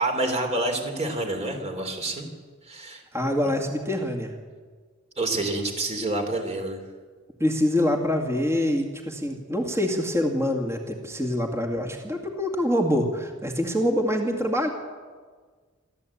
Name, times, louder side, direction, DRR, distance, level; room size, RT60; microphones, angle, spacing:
voice 1, 0.0-2.3 2.6-3.0 5.2-6.8, right 2 dB, 30° right, 4 dB, 3.3 m, -28 dB
voice 2, 3.1-4.3 7.4-14.7, left 1 dB, 15° right, 3 dB, 2.0 m, -25 dB
23.0 x 14.0 x 8.5 m, 1.5 s
head